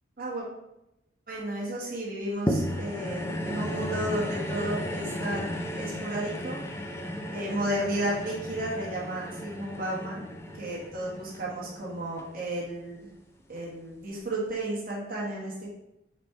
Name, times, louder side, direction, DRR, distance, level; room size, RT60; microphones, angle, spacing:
voice 1, 1.3-6.6 7.3-10.2 10.5-13.1 13.5-15.7, right 1 dB, 50° right, -4 dB, 1.1 m, -33 dB
sound 1, 2.5-13.0 13.6-13.7, equal, 15° left, 0.4 m, -34 dB
4.2 x 2.2 x 4.4 m, 0.87 s
head